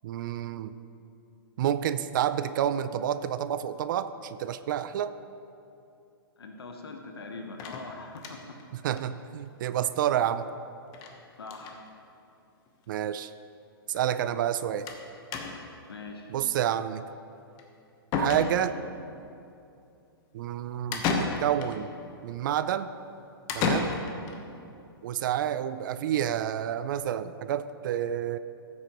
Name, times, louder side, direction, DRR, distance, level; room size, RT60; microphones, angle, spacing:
voice 1, 0.0-0.7 1.6-5.1 8.8-10.5 12.9-13.3 13.9-14.9 16.3-17.0 18.2-18.8 20.3-21.9 22.2-22.9 23.5-23.9 25.0-28.4, right 10 dB, 55° right, 13 dB, 0.4 m, -29 dB
voice 2, 6.4-8.4 11.4-11.8 15.9-16.3, left 3 dB, 90° left, 3 dB, 1.0 m, -42 dB
sound 1, 7.6-8.6 9.0-9.1 9.3-9.4 9.7-9.8 10.9-11.2 11.4-11.8 12.7-12.8 13.0-13.1 14.9-15.0 15.3-15.8 17.6-17.7 18.1-18.9 20.9-21.8 23.5-24.4, left 4 dB, 30° left, 1.0 m, -31 dB
14.5 x 7.7 x 3.0 m, 2.7 s
hypercardioid pair, 130°, 13 cm